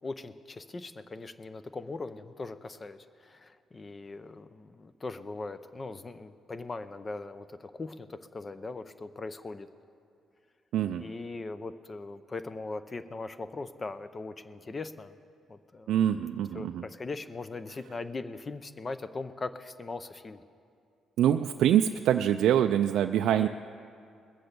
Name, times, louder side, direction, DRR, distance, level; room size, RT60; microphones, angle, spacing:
voice 1, 0.0-9.7 11.0-15.1 15.5-16.0 16.5-20.4 23.2-23.5, left 3 dB, 30° left, 12 dB, 0.6 m, -40 dB
voice 2, 10.7-11.0 15.9-16.8 21.2-23.5, right 10 dB, 80° right, 6 dB, 0.3 m, -25 dB
21.5 x 7.8 x 6.8 m, 2.4 s
cardioid pair, 90°, 0 cm